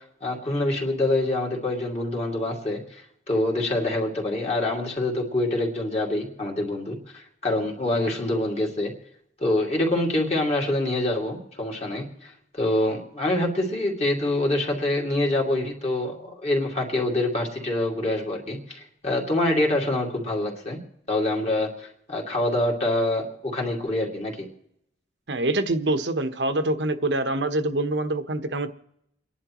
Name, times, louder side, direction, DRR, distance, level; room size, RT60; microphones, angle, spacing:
voice 1, 0.0-8.9 9.4-20.8 21.1-24.5, left 1 dB, 35° left, 0 dB, 2.6 m, -26 dB
voice 2, 25.3-28.7, right 2 dB, 85° right, 9 dB, 1.2 m, -25 dB
30.0 x 11.0 x 3.1 m, 0.77 s
head